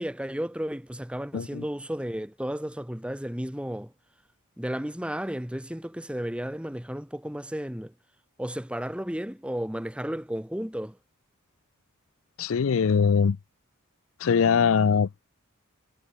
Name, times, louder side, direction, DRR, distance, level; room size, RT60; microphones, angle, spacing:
voice 1, 0.0-3.9 4.6-7.9 8.4-11.0, equal, 5° right, 1.1 m, -33 dB
voice 2, 1.3-1.6 12.4-13.4 14.2-15.1, left 6 dB, 65° left, 0.4 m, -22 dB
head